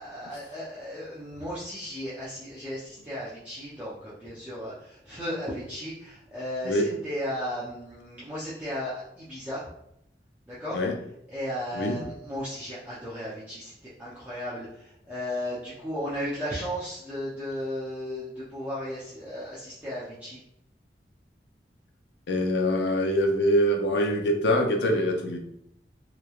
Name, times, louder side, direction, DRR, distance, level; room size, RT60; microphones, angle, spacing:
voice 1, 0.0-9.7 10.5-10.8 11.3-20.4, equal, 10° right, -10 dB, 0.5 m, -35 dB
voice 2, 22.3-25.4, equal, 65° left, 3 dB, 0.5 m, -24 dB
3.0 x 2.2 x 2.3 m, 0.76 s
head